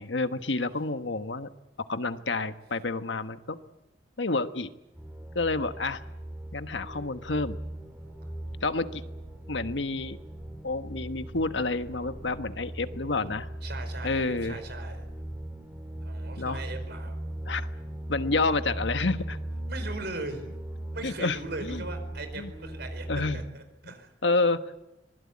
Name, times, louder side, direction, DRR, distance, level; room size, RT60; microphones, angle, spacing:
voice 1, 0.0-1.5 1.9-3.6 4.2-4.7 5.3-6.0 6.5-7.6 8.6-9.0 9.5-10.2 10.6-13.5 14.0-14.6 16.4-16.6 17.5-17.7 18.1-19.4 21.0-21.9 22.3-22.5 23.1-23.4 23.8-23.9 24.2-24.8, left 3 dB, 85° left, 9 dB, 1.3 m, -29 dB
sound 1, 4.9-23.5, right 1 dB, 10° right, 4.9 m, -38 dB
voice 2, 13.6-15.0 16.0-17.2 19.7-20.5 20.9-24.1, right 2 dB, 65° right, 8 dB, 4.9 m, -39 dB
25.5 x 20.5 x 8.6 m, 0.96 s
head